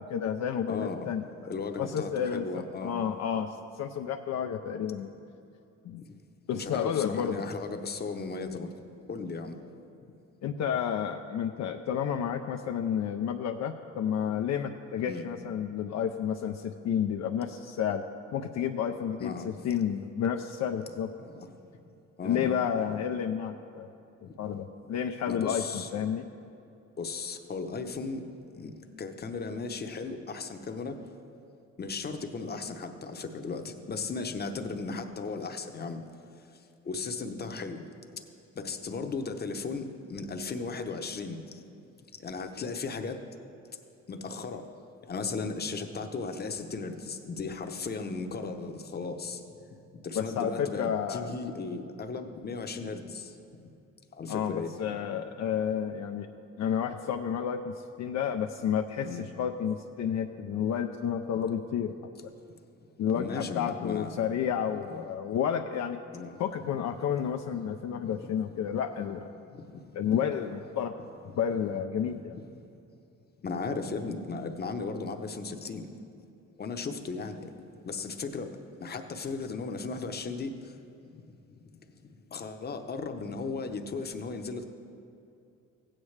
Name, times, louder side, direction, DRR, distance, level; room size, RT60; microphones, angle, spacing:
voice 1, 0.0-1.5 1.8-5.1 5.8-6.0 6.5-7.4 10.4-18.0 18.3-21.1 22.2-23.9 24.4-26.3 50.2-51.3 54.3-56.3 56.6-61.9 63.0-66.0 66.4-69.3 69.9-70.9 71.4-72.4, left 8 dB, 65° left, 5 dB, 0.5 m, -31 dB
voice 2, 0.7-1.1 1.5-3.0 6.0-6.1 6.5-8.7 9.1-9.5 15.1-15.2 19.2-19.5 21.2-21.5 22.2-22.5 25.3-25.9 27.0-28.2 28.5-28.7 29.0-31.0 31.8-36.0 36.9-37.8 38.6-41.4 42.2-43.2 44.1-44.7 45.1-49.4 50.0-53.3 54.2-55.2 59.0-59.2 63.1-64.1 64.9-65.0 66.1-66.4 69.5-70.2 72.3-72.4 73.4-76.0 76.6-77.5 77.8-78.5 78.8-80.5 82.3-84.6, left 4 dB, 35° left, 6 dB, 0.8 m, -36 dB
15.5 x 8.8 x 3.3 m, 2.7 s
cardioid pair, 90°, 30 cm